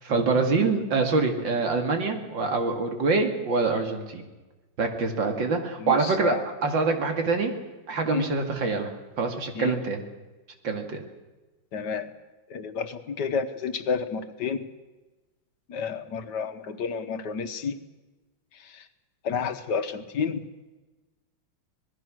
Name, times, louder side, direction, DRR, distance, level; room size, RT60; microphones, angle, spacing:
voice 1, 0.0-4.3 4.8-7.5 7.9-10.0 10.6-11.0, right 4 dB, 85° right, 4 dB, 3.0 m, -25 dB
voice 2, 5.8-6.4 8.1-8.2 9.6-9.8 11.7-12.1 12.5-14.6 15.7-17.8 18.7-18.8 19.2-20.4, left 6 dB, 65° left, 10 dB, 1.8 m, -30 dB
26.0 x 19.0 x 6.3 m, 1.2 s
omnidirectional pair, 2.0 m